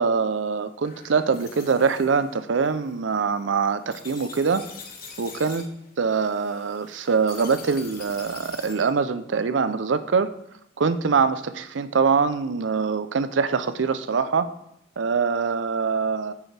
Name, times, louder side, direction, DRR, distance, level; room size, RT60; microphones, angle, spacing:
voice 1, 0.0-4.6 5.2-5.7 6.0-10.3 10.8-14.5 15.0-16.3, right 5 dB, 75° right, 12 dB, 0.5 m, -23 dB
sound 1, 0.8-8.9, left 5 dB, 50° left, 1.4 m, -44 dB
10.0 x 6.8 x 3.3 m, 0.78 s
head